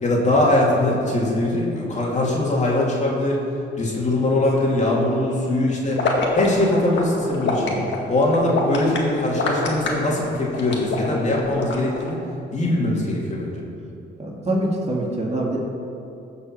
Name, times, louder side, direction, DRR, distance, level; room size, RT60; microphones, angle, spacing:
voice 1, 0.0-3.4 3.8-6.0 6.3-7.8 8.1-12.2 12.5-13.6, left 1 dB, 35° left, -3 dB, 2.7 m, -21 dB
sound 1, 5.9-12.1, left 3 dB, 65° left, 1.9 m, -25 dB
voice 2, 14.2-15.6, right 1 dB, 30° right, -2 dB, 2.4 m, -24 dB
15.5 x 5.5 x 6.1 m, 2.6 s
cardioid pair, 90°, 20 cm